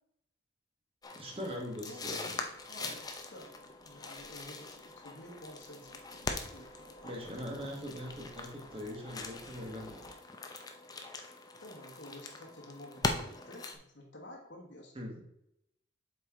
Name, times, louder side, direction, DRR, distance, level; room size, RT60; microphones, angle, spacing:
sound 1, 1.0-13.8, left 3 dB, 20° left, 0.6 m, -42 dB
voice 1, 1.1-2.4 2.8-2.9 7.0-10.2 15.0-15.2, left 1 dB, 30° right, 0 dB, 1.6 m, -42 dB
Train, 1.9-10.1, equal, 5° right, 1.4 m, -60 dB
voice 2, 2.7-7.2 11.6-14.9, left 1 dB, 70° left, -2 dB, 1.3 m, -51 dB
7.6 x 4.7 x 3.7 m, 0.78 s
head